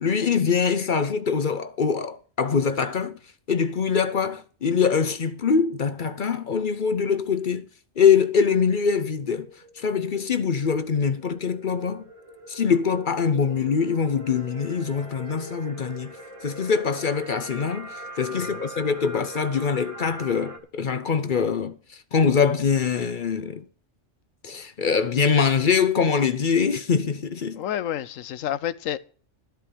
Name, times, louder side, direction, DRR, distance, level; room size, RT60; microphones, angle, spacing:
voice 1, 0.0-3.2 3.5-7.6 8.0-9.5 9.8-12.0 12.5-16.1 16.4-23.6 24.4-27.6, left 6 dB, 50° left, 0.7 m, -23 dB
sound 1, 9.2-20.6, right 1 dB, 25° right, 1.4 m, -42 dB
voice 2, 27.5-29.0, left 11 dB, 90° left, 1.1 m, -30 dB
13.0 x 4.6 x 8.4 m
omnidirectional pair, 1.3 m